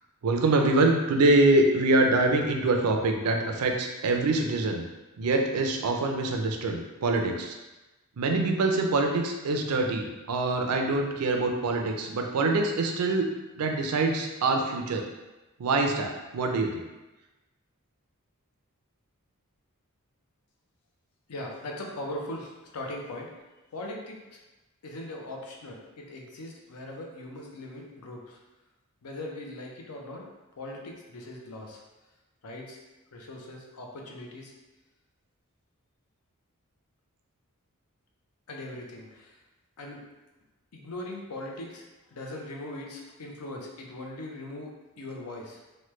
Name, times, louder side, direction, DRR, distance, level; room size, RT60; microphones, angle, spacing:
voice 1, 0.2-4.8 5.2-7.6 8.2-13.3 13.5-15.1 15.6-16.8, right 2 dB, 80° right, 3 dB, 0.4 m, -25 dB
voice 2, 21.3-23.3 23.7-24.4 24.8-28.4 29.0-30.2 30.6-31.8 32.4-32.8 33.1-34.5 38.5-39.4 39.8-40.1 40.7-45.6, left 1 dB, 80° left, 0 dB, 0.6 m, -40 dB
3.1 x 2.2 x 3.1 m, 1.1 s
head